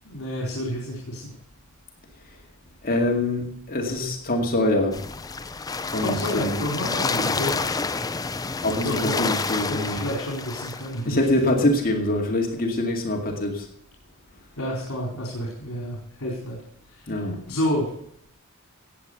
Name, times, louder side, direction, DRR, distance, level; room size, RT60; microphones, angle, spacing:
voice 1, 0.0-1.2 6.0-7.5 8.8-11.2 14.6-16.6 16.9-17.2 17.5-17.9, left 1 dB, 70° left, -1 dB, 4.2 m, -30 dB
voice 2, 2.8-5.0 5.9-6.6 7.1-7.4 8.6-10.0 11.0-13.7 17.1-17.4, left 1 dB, 45° left, 2 dB, 2.3 m, -24 dB
sound 1, 4.9-11.0, left 4 dB, 15° left, 0.5 m, -29 dB
16.5 x 8.6 x 6.8 m, 0.69 s
head